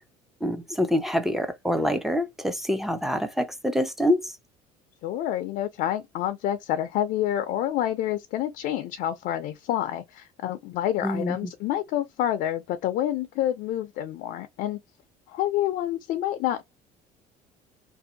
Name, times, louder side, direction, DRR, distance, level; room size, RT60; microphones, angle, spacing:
voice 1, 0.4-4.4 11.0-11.5, left 1 dB, ahead, 0.5 m, -26 dB
voice 2, 5.0-14.8 15.3-16.6, left 12 dB, 65° left, 0.4 m, -28 dB
2.6 x 2.1 x 2.6 m
cardioid pair, 115°, 16 cm